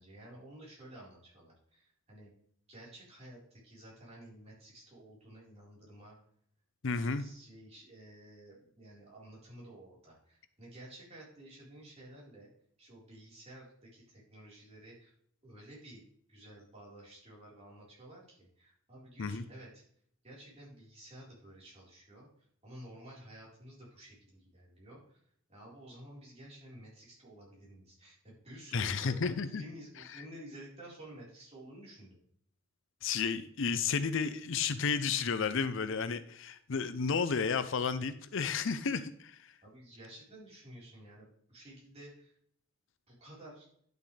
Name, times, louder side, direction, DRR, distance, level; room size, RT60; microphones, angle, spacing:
voice 1, 0.0-2.3 2.7-6.2 7.1-12.5 12.8-15.1 15.4-16.0 16.3-19.7 20.2-22.3 22.6-25.2 25.5-32.2 39.6-42.3 43.1-43.7, right 1 dB, 30° right, -5 dB, 4.3 m, -52 dB
voice 2, 6.8-7.3 19.2-19.4 28.7-29.6 30.1-30.2 33.0-39.5, left 5 dB, 60° left, 12 dB, 0.6 m, -32 dB
11.0 x 6.6 x 3.3 m, 0.63 s
head